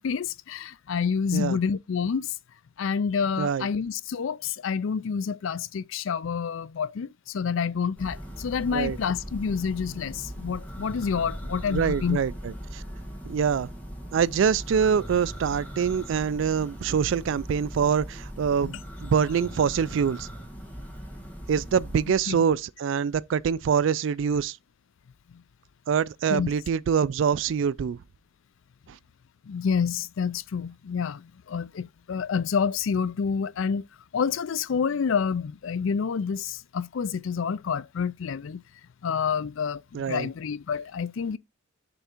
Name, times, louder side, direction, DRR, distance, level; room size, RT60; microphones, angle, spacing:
voice 1, 0.0-2.3 2.8-12.2 18.6-18.8 22.3-22.4 25.3-25.4 26.3-26.5 29.4-33.8 34.1-38.6 39.0-41.4, left 6 dB, 65° left, 0.4 m, -28 dB
Church bell, 8.0-22.3, equal, 10° left, 1.8 m, -39 dB
voice 2, 11.7-12.8 13.2-13.7 14.1-20.3 21.5-24.6 25.9-28.0 28.9-29.0 39.9-40.3, right 7 dB, 60° right, 0.3 m, -25 dB
6.8 x 3.6 x 4.3 m
head